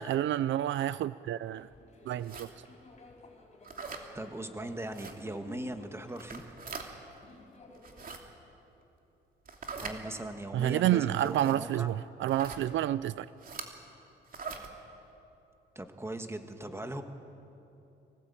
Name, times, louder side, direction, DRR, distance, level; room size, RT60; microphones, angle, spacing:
voice 1, 0.0-1.7 2.1-2.7 10.5-13.3, right 12 dB, 70° right, 17 dB, 0.5 m, -29 dB
sound 1, 1.5-8.2, left 2 dB, 35° left, 5.0 m, -54 dB
sound 2, 2.2-2.5 3.6-4.0 4.9-5.1 6.1-6.9 7.7-8.2 9.4-10.0 11.1-11.6 12.3-12.6 13.4-13.7 14.3-14.7, right 5 dB, 45° right, 2.8 m, -42 dB
voice 2, 4.1-6.5 9.8-11.9 15.8-17.0, right 1 dB, 15° right, 6 dB, 1.9 m, -39 dB
24.5 x 17.5 x 8.7 m, 2.8 s
cardioid pair, 90°, 20 cm